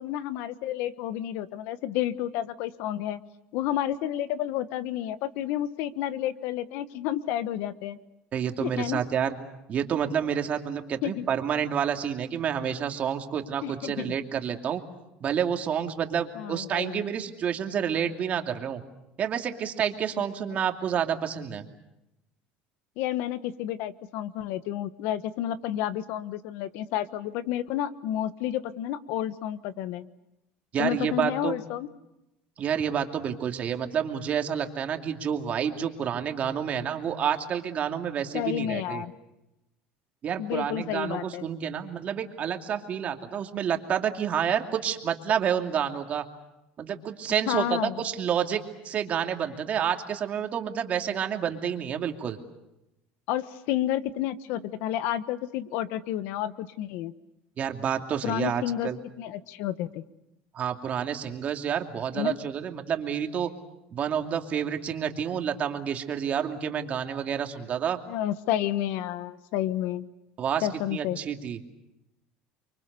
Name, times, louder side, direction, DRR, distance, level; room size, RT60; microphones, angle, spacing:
voice 1, 0.0-3.2 3.5-8.0 8.6-9.0 11.0-11.2 13.6-14.2 16.4-17.0 23.0-30.1 30.8-31.9 38.3-39.1 40.4-41.4 47.5-48.0 53.3-57.1 58.2-58.9 59.2-60.0 62.1-62.4 68.1-70.0 70.6-71.2, left 12 dB, 75° left, 14 dB, 1.2 m, -30 dB
voice 2, 8.3-9.4 9.7-14.8 15.2-18.8 19.2-21.7 30.7-31.6 32.6-39.0 40.2-46.2 46.8-52.4 57.6-59.0 60.5-63.5 63.9-68.0 70.4-71.6, right 8 dB, 40° right, 4 dB, 2.6 m, -29 dB
29.5 x 24.0 x 6.8 m, 0.92 s
supercardioid pair, 115°, 4 cm